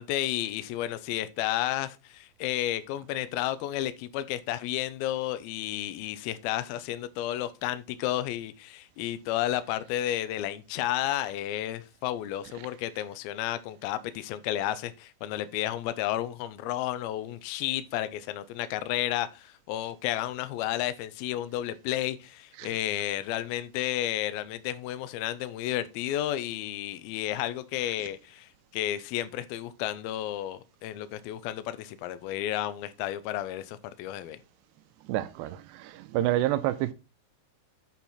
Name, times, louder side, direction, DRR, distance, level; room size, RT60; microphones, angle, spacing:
voice 1, 0.0-34.4, left 13 dB, 85° left, 2.2 m, -32 dB
voice 2, 35.1-36.9, right 14 dB, 80° right, 2.6 m, -28 dB
8.3 x 4.4 x 5.7 m
omnidirectional pair, 5.0 m